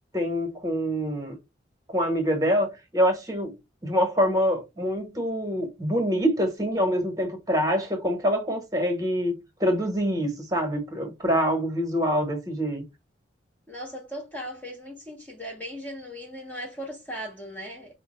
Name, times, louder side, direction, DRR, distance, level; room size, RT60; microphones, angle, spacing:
voice 1, 0.1-1.4 1.9-3.6 3.8-12.8, equal, 20° right, 1.1 m, -25 dB
voice 2, 13.7-17.9, equal, 10° left, 0.8 m, -38 dB
4.6 x 2.1 x 3.0 m
head